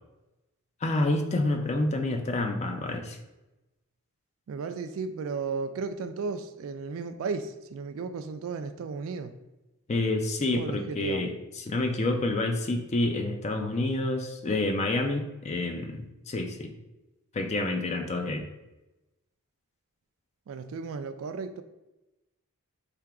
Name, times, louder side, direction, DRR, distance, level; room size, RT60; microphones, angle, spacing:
voice 1, 0.8-3.2 9.9-16.7 17.3-18.4, left 2 dB, 30° left, 5 dB, 0.4 m, -28 dB
voice 2, 4.5-9.3 10.5-11.2 20.5-21.6, right 4 dB, 65° right, 8 dB, 0.3 m, -34 dB
3.5 x 2.8 x 4.7 m, 0.99 s
head